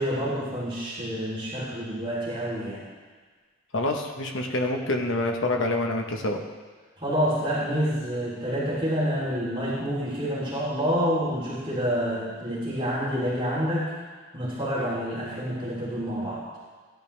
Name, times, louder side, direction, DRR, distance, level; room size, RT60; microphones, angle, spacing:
voice 1, 0.0-2.8 7.0-13.9 14.3-16.4, equal, 25° right, -8 dB, 3.3 m, -28 dB
voice 2, 3.7-6.4, left 2 dB, 65° left, 2 dB, 1.2 m, -26 dB
15.5 x 10.5 x 3.4 m, 1.4 s
head